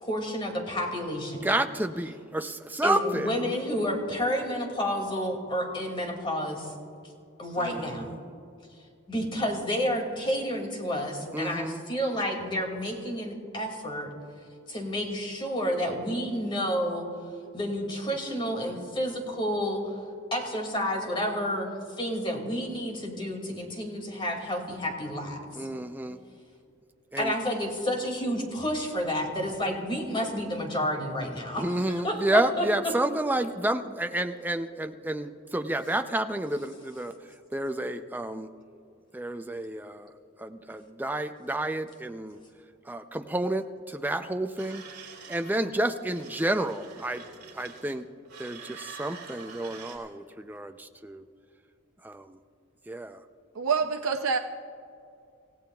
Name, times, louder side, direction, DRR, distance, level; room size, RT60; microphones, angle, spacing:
voice 1, 0.0-1.5 2.8-6.7 7.4-8.1 9.1-14.1 14.7-17.1 17.5-20.0 20.3-25.4 27.2-32.9, equal, 25° left, 1 dB, 2.3 m, -30 dB
voice 2, 1.4-3.3 7.6-8.1 11.3-11.8 25.6-26.2 27.1-27.3 31.6-37.1 37.5-38.5 39.1-40.1 40.4-42.4 42.9-44.8 45.3-47.2 47.5-48.1 48.4-51.2 52.0-52.4 52.9-53.2, right 1 dB, 10° right, 7 dB, 0.5 m, -30 dB
sound 1, 44.6-45.6 46.0-48.0 48.3-50.0, right 5 dB, 50° right, 3.3 m, -46 dB
voice 3, 53.6-54.4, right 5 dB, 85° right, 5 dB, 0.6 m, -26 dB
27.5 x 16.0 x 2.3 m, 2.5 s
head